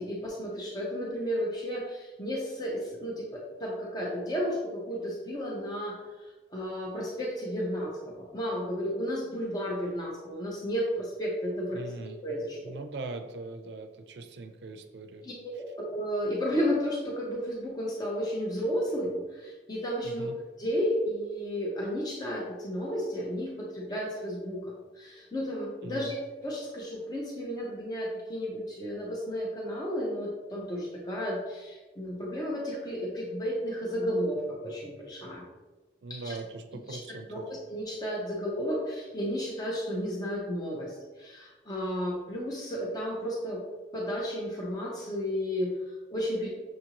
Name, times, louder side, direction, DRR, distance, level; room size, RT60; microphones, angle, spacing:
voice 1, 0.0-12.7 15.2-20.3 20.6-35.4 36.1-36.4 36.9-37.0 37.3-43.6 43.9-46.5, equal, 20° left, -3 dB, 0.6 m, -33 dB
voice 2, 11.7-12.2 12.6-15.3 20.0-20.3 25.8-26.1 36.0-37.4, right 3 dB, 70° right, 6 dB, 0.4 m, -40 dB
6.4 x 2.5 x 2.9 m, 1.2 s
head